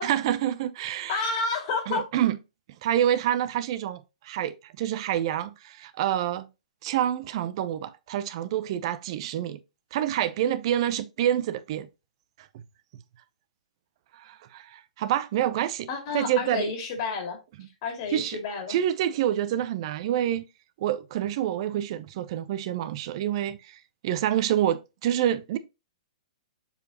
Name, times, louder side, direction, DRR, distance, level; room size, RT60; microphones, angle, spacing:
voice 1, 0.0-1.3 1.9-2.4 2.8-6.5 6.8-9.6 9.9-11.9 14.1-15.9 16.1-16.7 18.1-18.4 18.7-20.4 20.8-25.6, right 11 dB, 50° right, 0.7 m, -27 dB
voice 2, 1.1-2.0 15.9-17.4 17.8-18.8, left 4 dB, 45° left, 2.4 m, -30 dB
6.8 x 4.8 x 2.9 m
hypercardioid pair, 125°, 4 cm